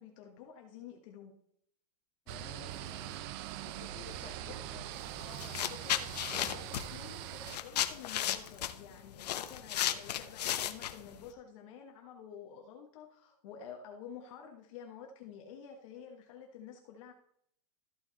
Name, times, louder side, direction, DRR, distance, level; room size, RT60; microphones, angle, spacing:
voice 1, 0.0-1.3 4.2-4.6 5.2-17.1, left 7 dB, 50° left, 3 dB, 1.3 m, -50 dB
voice 2, 2.3-5.1, left 5 dB, 30° left, -1 dB, 2.8 m, -52 dB
sound 1, 2.3-7.6, right 14 dB, 40° right, 0.5 m, -43 dB
sound 2, 5.0-5.1 5.4-11.3, left 11 dB, 80° left, 0.9 m, -35 dB
13.5 x 5.6 x 4.0 m, 0.71 s
supercardioid pair, 155°, 20 cm